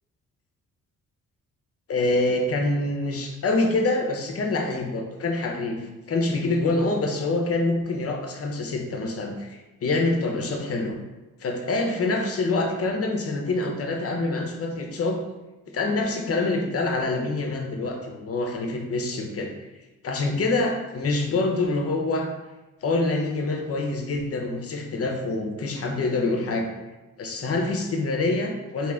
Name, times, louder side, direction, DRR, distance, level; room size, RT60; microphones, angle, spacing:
voice 1, 1.9-5.8 6.1-11.0 11.4-15.2 15.7-19.5 20.0-22.3 22.8-26.7 27.2-28.9, left 2 dB, 50° left, 2 dB, 0.8 m, -26 dB
3.2 x 2.9 x 3.5 m, 1.1 s
cardioid pair, 75°, 30 cm